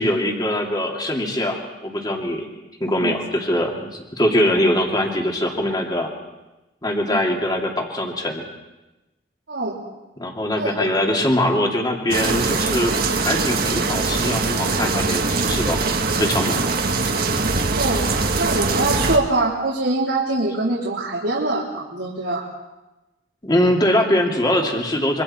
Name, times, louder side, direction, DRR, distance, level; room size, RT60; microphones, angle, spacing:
voice 1, 0.0-2.5 2.8-6.1 6.8-8.5 10.2-12.9 13.2-15.8 16.2-16.6 23.4-25.2, left 1 dB, 25° left, 1 dB, 2.6 m, -22 dB
voice 2, 10.5-10.9 17.8-18.0 18.4-22.5, right 2 dB, 90° right, -6 dB, 3.8 m, -23 dB
sound 1, 12.1-19.2, right 3 dB, 55° right, 1.5 m, -22 dB
26.0 x 24.0 x 4.3 m, 1.0 s
head